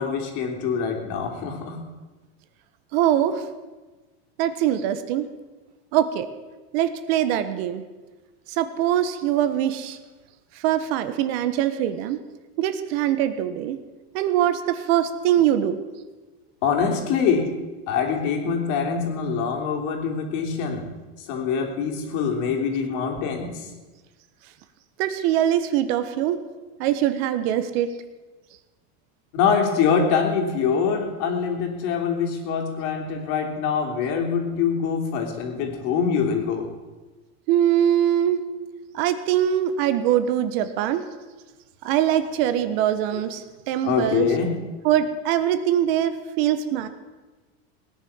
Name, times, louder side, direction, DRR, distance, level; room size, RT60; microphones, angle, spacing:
voice 1, 0.0-1.8 16.6-17.5 17.9-20.8 21.2-23.7 29.3-36.7 43.8-44.5, left 6 dB, 60° left, 2 dB, 3.4 m, -24 dB
voice 2, 2.9-3.5 4.4-5.3 5.9-6.3 6.7-7.8 8.5-10.0 10.5-12.2 12.6-13.8 14.1-15.8 25.0-26.4 26.8-27.9 37.5-38.4 38.9-41.0 41.8-44.3 44.8-46.9, right 11 dB, 70° right, 11 dB, 1.5 m, -22 dB
18.0 x 9.9 x 7.2 m, 1.2 s
supercardioid pair, 145°, 32 cm